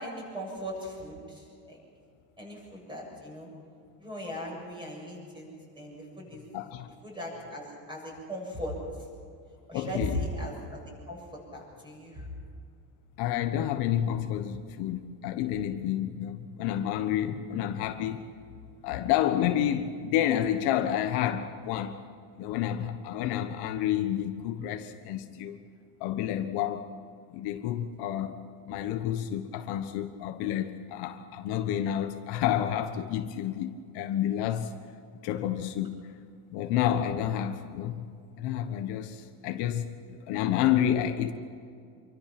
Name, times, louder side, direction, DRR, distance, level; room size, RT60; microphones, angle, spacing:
voice 1, 0.0-1.8 2.4-3.5 4.0-5.5 5.7-6.4 7.0-8.7 9.7-10.8 11.1-11.2 11.5-12.3, equal, 10° right, 7.7 m, -38 dB
voice 2, 6.5-6.9 9.7-10.3 13.2-18.3 18.8-22.0 22.4-25.6 26.0-26.9 27.3-28.4 28.7-34.7 35.2-36.1 36.5-38.1 38.4-41.3, left 11 dB, 65° left, 1.4 m, -29 dB
27.0 x 24.0 x 6.1 m
cardioid pair, 175°, 42 cm